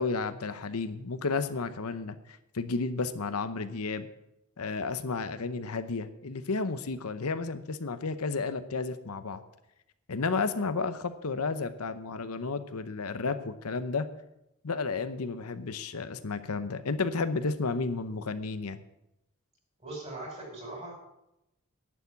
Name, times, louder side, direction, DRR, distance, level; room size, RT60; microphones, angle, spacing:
voice 1, 0.0-2.2 2.5-4.1 4.6-9.4 10.1-14.1 14.6-18.8, left 4 dB, 85° left, 11 dB, 0.8 m, -32 dB
voice 2, 19.8-20.9, right 2 dB, 30° right, -1 dB, 5.3 m, -40 dB
11.0 x 7.1 x 8.3 m, 0.87 s
head